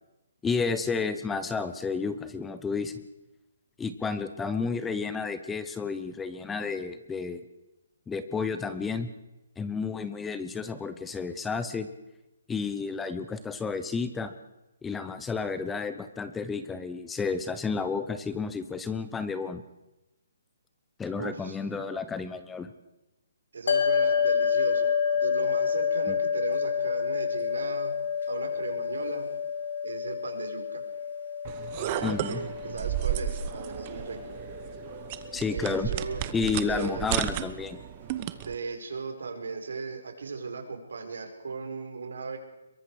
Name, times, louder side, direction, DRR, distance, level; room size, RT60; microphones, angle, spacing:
voice 1, 0.4-3.0 3.8-7.4 8.1-9.1 9.6-11.9 12.5-14.3 14.8-19.6 21.0-22.7 26.1-26.2 32.0-32.4 35.3-35.9 36.3-37.8, left 5 dB, 5° left, 11 dB, 0.8 m, -31 dB
voice 2, 21.2-21.6 23.5-27.9 28.3-29.3 29.8-30.8 31.8-34.2 35.5-36.2 36.6-37.0 38.3-42.4, right 4 dB, 85° right, 4 dB, 5.0 m, -37 dB
sound 1, 23.7-36.2, left 6 dB, 65° left, 3.2 m, -29 dB
sound 2, 31.4-38.6, right 12 dB, 25° right, 1.0 m, -33 dB
24.5 x 22.5 x 5.0 m, 0.96 s
hypercardioid pair, 165°, 0 cm